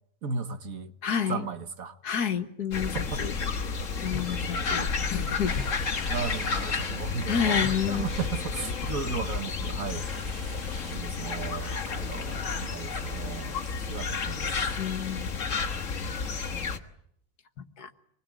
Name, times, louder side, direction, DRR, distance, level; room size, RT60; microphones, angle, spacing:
voice 1, 0.2-0.9 1.3-2.0 2.9-3.3 4.1-4.2 6.1-10.1 10.9-13.6 13.9-14.5, right 5 dB, 60° right, 1.8 m, -35 dB
voice 2, 1.0-1.5 2.0-3.0 3.2-3.3 4.0-5.5 6.0-6.1 7.3-8.1 11.6-11.8 14.8-15.4 17.8-17.9, left 8 dB, 75° left, 1.9 m, -30 dB
sound 1, 2.7-16.8, left 5 dB, 55° left, 1.8 m, -31 dB
sound 2, 5.5-12.6 13.1-13.2 13.4-13.7 14.0-14.5 14.8-14.9 15.3-15.7, right 1 dB, 25° right, 6.2 m, -44 dB
25.0 x 21.0 x 9.3 m
omnidirectional pair, 1.7 m